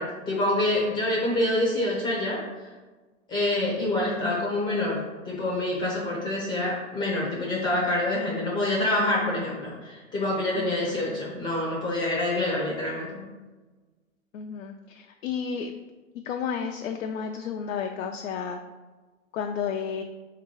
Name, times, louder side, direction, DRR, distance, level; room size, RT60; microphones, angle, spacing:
voice 1, 0.0-2.4 3.3-5.0 5.2-13.2, left 1 dB, 10° left, -4 dB, 0.5 m, -26 dB
voice 2, 10.6-11.0 14.3-15.7 16.2-18.6 19.3-20.0, left 7 dB, 65° left, 3 dB, 0.5 m, -32 dB
3.5 x 2.9 x 4.7 m, 1.3 s
hypercardioid pair, 135°, 41 cm